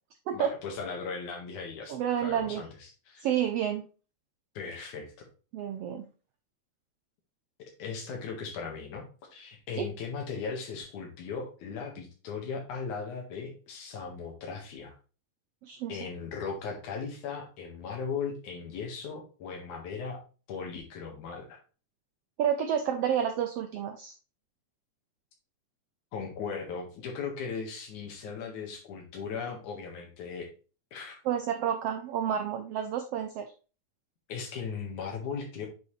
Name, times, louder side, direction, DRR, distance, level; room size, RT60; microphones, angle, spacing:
voice 1, 0.3-3.3 4.5-5.3 7.8-9.0 9.3-14.9 15.9-20.2 20.5-21.6 26.1-30.5 30.9-31.2 34.3-35.7, left 5 dB, 75° left, 1 dB, 3.0 m, -38 dB
voice 2, 1.9-2.6 3.2-3.9 5.5-6.1 9.8-9.9 15.6-16.0 22.4-24.1 31.2-33.5, right 9 dB, 80° right, 6 dB, 1.4 m, -30 dB
8.0 x 5.3 x 3.2 m, 0.35 s
omnidirectional pair, 3.5 m